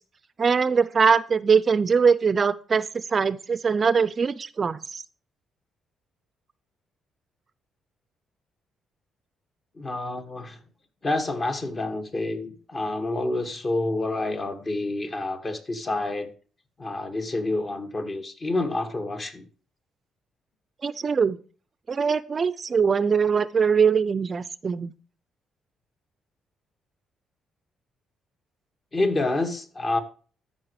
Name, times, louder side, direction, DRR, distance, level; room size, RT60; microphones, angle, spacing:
voice 1, 0.4-5.0 20.8-21.4 21.9-24.9, right 6 dB, 40° right, 0.4 m, -22 dB
voice 2, 9.8-10.6 11.0-16.3 16.8-19.5 28.9-30.0, left 2 dB, 35° left, 1.7 m, -28 dB
13.5 x 5.6 x 3.2 m
cardioid pair, 90°, 0 cm